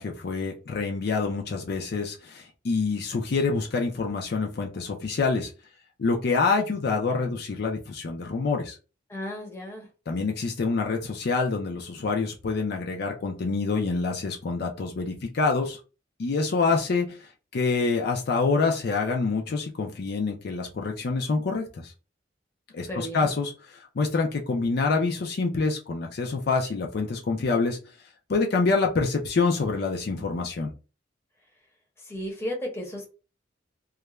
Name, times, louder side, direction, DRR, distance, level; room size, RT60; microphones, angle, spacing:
voice 1, 0.0-5.5 6.0-8.8 10.1-15.8 16.2-21.9 22.7-27.8 28.3-30.7, left 4 dB, 60° left, 2 dB, 0.4 m, -26 dB
voice 2, 9.1-9.9 22.9-23.3 32.0-33.1, equal, 15° left, 0 dB, 0.7 m, -34 dB
2.3 x 2.1 x 3.0 m, 0.32 s
head